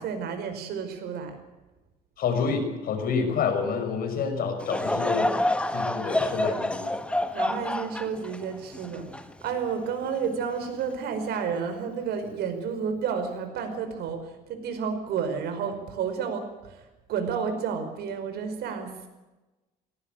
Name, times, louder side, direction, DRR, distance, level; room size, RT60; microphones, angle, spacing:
voice 1, 0.0-1.3 7.3-9.1 9.4-19.1, right 6 dB, 75° right, 7 dB, 5.1 m, -31 dB
voice 2, 2.2-5.3 5.7-6.9, left 5 dB, 60° left, 6 dB, 6.0 m, -28 dB
Laughter / Crowd, 4.6-10.1 10.6-10.7 11.5-11.8, left 1 dB, 5° left, 1.4 m, -28 dB
18.5 x 18.0 x 9.1 m, 1.1 s
cardioid pair, 110°, 17 cm